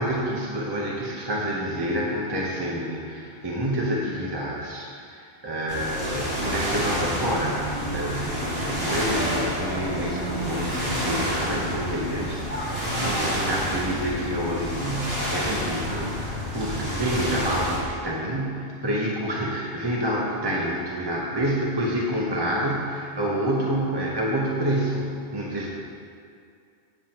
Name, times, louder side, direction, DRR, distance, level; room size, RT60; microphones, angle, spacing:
voice 1, 0.0-25.7, equal, 20° right, -4 dB, 1.0 m, -28 dB
sound 1, 5.7-17.8, equal, 55° right, 3.2 m, -29 dB
16.0 x 7.5 x 3.0 m, 2.4 s
omnidirectional pair, 1.2 m